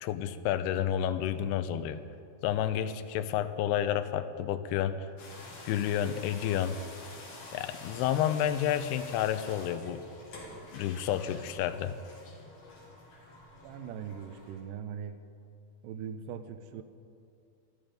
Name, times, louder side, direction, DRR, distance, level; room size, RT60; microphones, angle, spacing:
voice 1, 0.0-2.0 2.4-5.0 5.7-6.8 7.5-10.0 10.7-12.0, left 10 dB, 80° left, 10 dB, 2.6 m, -30 dB
sound 1, 5.2-14.6, left 2 dB, 60° left, 4.1 m, -48 dB
voice 2, 13.6-15.2 15.8-16.8, right 8 dB, 80° right, 8 dB, 1.9 m, -40 dB
19.5 x 13.0 x 5.2 m, 2.5 s
omnidirectional pair, 4.9 m